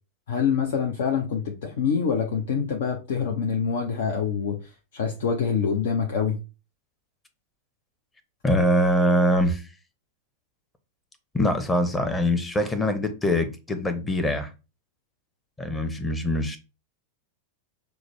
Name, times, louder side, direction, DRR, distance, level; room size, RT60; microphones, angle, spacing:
voice 1, 0.3-6.4, left 6 dB, 55° left, 0.6 m, -26 dB
voice 2, 8.4-9.6 11.3-14.5 15.6-16.6, left 1 dB, 10° left, 0.8 m, -23 dB
6.0 x 2.1 x 3.1 m
figure-of-eight pair, 90°, 0 cm